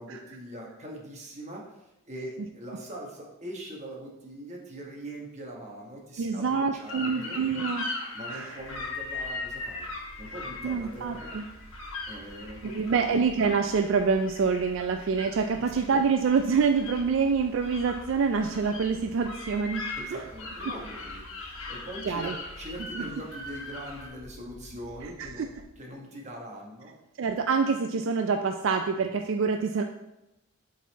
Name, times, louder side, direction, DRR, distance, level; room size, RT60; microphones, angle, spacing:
voice 1, 0.0-7.4 8.1-9.9 10.2-11.4 12.1-13.1 15.6-15.9 19.9-25.5 25.8-27.0, right 1 dB, 30° right, -1 dB, 1.2 m, -42 dB
voice 2, 6.2-7.8 8.3-8.5 10.6-11.4 12.6-19.8 22.1-22.3 23.0-23.1 25.4-25.5 27.2-29.8, right 5 dB, 65° right, 6 dB, 0.3 m, -26 dB
sound 1, 6.8-24.1, left 3 dB, 65° left, 1.4 m, -39 dB
sound 2, 8.6-25.6, equal, 85° right, 1.5 m, -50 dB
7.3 x 4.0 x 4.0 m, 0.92 s
head